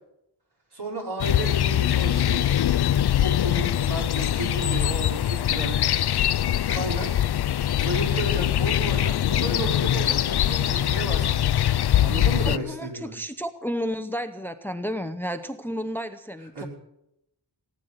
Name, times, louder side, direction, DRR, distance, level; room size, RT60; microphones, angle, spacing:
voice 1, 0.7-2.5 3.2-5.8 6.7-7.1 7.8-11.5 12.0-13.1 16.5-16.7, right 2 dB, 65° right, -2 dB, 5.4 m, -33 dB
sound 1, 1.2-12.6, left 11 dB, 65° left, 0.5 m, -23 dB
voice 2, 12.4-16.7, equal, 5° left, 10 dB, 0.7 m, -32 dB
19.0 x 9.6 x 7.7 m, 0.83 s
wide cardioid pair, 95°, 42 cm